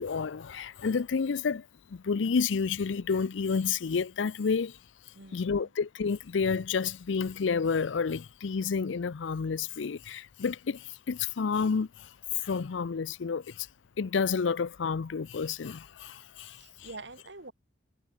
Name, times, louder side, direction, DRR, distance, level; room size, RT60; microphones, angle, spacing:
voice 1, 0.0-1.6 1.9-4.7 5.3-12.1 12.4-13.7 14.0-16.6, left 5 dB, 80° left, 0.5 m, -30 dB
voice 2, 5.1-5.7 16.5-17.5, right 3 dB, 70° right, 2.9 m, -46 dB
head